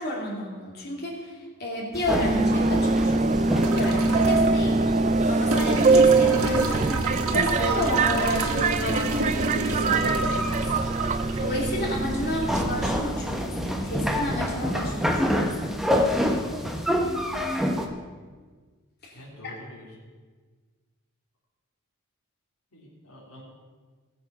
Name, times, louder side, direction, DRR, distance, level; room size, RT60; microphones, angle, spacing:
voice 1, 0.0-4.9 5.3-6.9 7.3-10.8 11.4-15.5 19.0-19.5, left 1 dB, 45° left, -2 dB, 2.6 m, -31 dB
sound 1, 1.9-17.9, equal, ahead, 0.9 m, -29 dB
Subway metro underground, 2.2-13.0, right 3 dB, 30° right, 0.4 m, -23 dB
sound 2, 3.6-4.5 5.5-12.5 13.9-14.0, right 3 dB, 75° right, 1.3 m, -30 dB
voice 2, 16.3-16.7 19.1-19.9 22.7-23.4, equal, 85° left, -5 dB, 3.4 m, -45 dB
18.5 x 7.2 x 5.9 m, 1.5 s
head